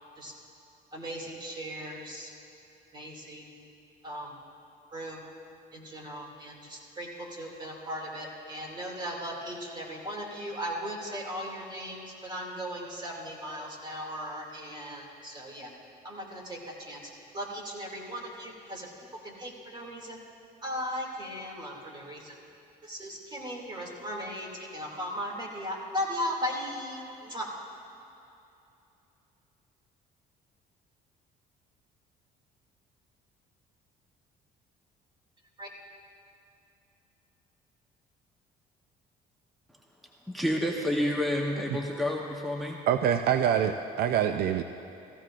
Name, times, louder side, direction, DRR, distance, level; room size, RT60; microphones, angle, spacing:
voice 1, 0.9-2.3 2.9-3.6 4.0-4.3 4.9-5.2 5.7-15.7 16.0-20.2 20.6-22.4 22.8-27.5 35.6-35.7, equal, 25° right, -1 dB, 2.4 m, -37 dB
voice 2, 40.3-42.8, left 1 dB, ahead, -1 dB, 0.9 m, -29 dB
voice 3, 42.9-44.6, right 9 dB, 65° right, 8 dB, 0.4 m, -25 dB
16.0 x 15.5 x 2.5 m, 2.8 s
cardioid pair, 110°, 17 cm